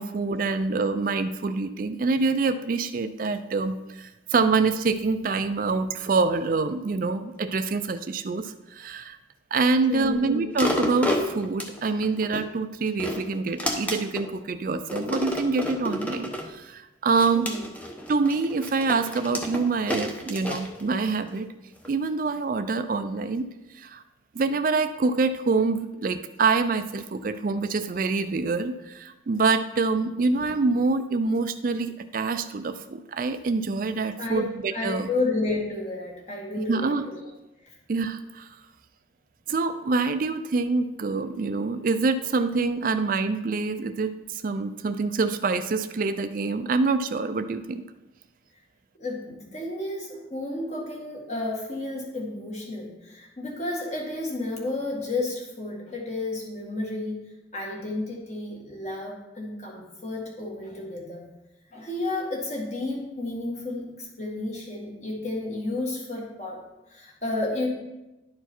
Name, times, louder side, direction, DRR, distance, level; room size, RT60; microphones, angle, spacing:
voice 1, 0.0-9.2 9.5-17.5 18.1-21.5 21.9-23.5 23.7-24.0 24.3-35.1 36.7-37.0 37.9-38.5 39.5-47.8, right 4 dB, 45° right, 10 dB, 0.4 m, -26 dB
voice 2, 9.9-10.4 17.4-17.6 34.2-34.4 34.7-37.2 37.6-37.7 49.0-57.2 57.5-61.2 61.7-66.6 66.9-67.7, left 2 dB, 35° left, -2 dB, 1.9 m, -31 dB
sound 1, 10.5-12.4 12.9-14.3 14.9-16.5 17.1-21.3 21.8-21.9, equal, 10° left, 0.8 m, -30 dB
11.0 x 4.6 x 4.4 m, 1.0 s
head